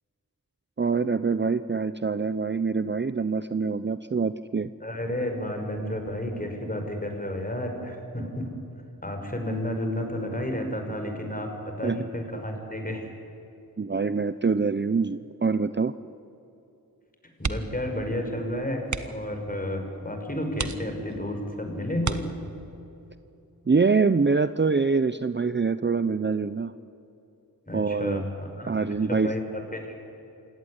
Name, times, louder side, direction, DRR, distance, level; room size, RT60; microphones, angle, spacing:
voice 1, 0.8-4.7 11.8-12.0 13.8-15.9 23.7-26.7 27.7-28.2 28.7-29.3, right 4 dB, 30° right, 13 dB, 0.7 m, -25 dB
voice 2, 4.8-8.5 9.0-13.1 17.4-22.3 27.7-28.7 29.1-29.9, left 1 dB, 25° left, 4 dB, 5.7 m, -31 dB
sound 1, 17.3-17.9 18.2-18.4 18.8-19.3 19.9-20.0 20.5-21.3 22.0-22.8 24.3-24.7 25.0-25.1, right 5 dB, 50° right, 1.4 m, -33 dB
27.0 x 17.5 x 10.0 m, 2.9 s
cardioid pair, 50°, 37 cm